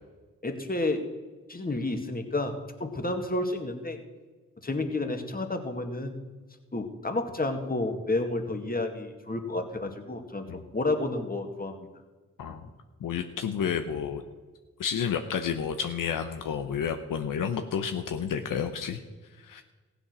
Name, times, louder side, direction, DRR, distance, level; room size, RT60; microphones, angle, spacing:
voice 1, 0.4-1.1 1.5-4.0 4.6-6.2 6.7-11.9, left 2 dB, 25° left, 5 dB, 2.1 m, -31 dB
voice 2, 13.0-14.2 14.8-19.0 19.4-19.6, left 7 dB, 70° left, 6 dB, 0.9 m, -30 dB
15.5 x 8.0 x 6.2 m, 1.3 s
supercardioid pair, 40°, 33 cm